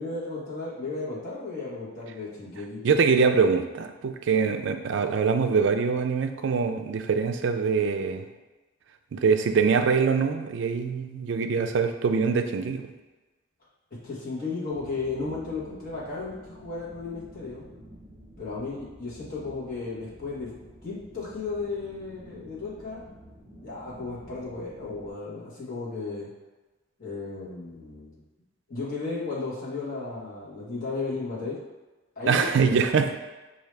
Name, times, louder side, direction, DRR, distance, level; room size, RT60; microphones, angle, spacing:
voice 1, 0.0-2.8 14.0-17.6 18.4-20.5 20.8-23.0 23.6-26.3 27.0-28.2 28.7-31.6 32.2-32.7, left 3 dB, 45° left, -7 dB, 1.3 m, -34 dB
voice 2, 2.8-8.3 9.1-12.9 32.3-33.1, right 5 dB, 60° right, 7 dB, 0.3 m, -24 dB
sound 1, 14.7-25.1, right 1 dB, 10° right, 1.0 m, -49 dB
4.8 x 2.7 x 3.3 m, 1.2 s
head